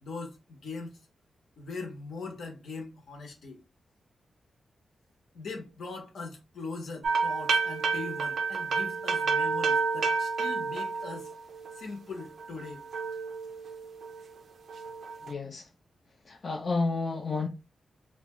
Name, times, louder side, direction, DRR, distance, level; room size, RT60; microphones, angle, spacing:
voice 1, 0.0-1.0 1.6-3.6 5.3-11.3 11.7-12.9, left 3 dB, 75° left, 0.8 m, -41 dB
sound 1, 7.0-11.8 12.2-14.2 14.7-15.3, right 5 dB, 75° right, 0.4 m, -30 dB
voice 2, 15.2-15.7 16.3-17.5, left 3 dB, 40° left, 0.4 m, -31 dB
2.7 x 2.2 x 2.9 m
wide cardioid pair, 155°, 0 cm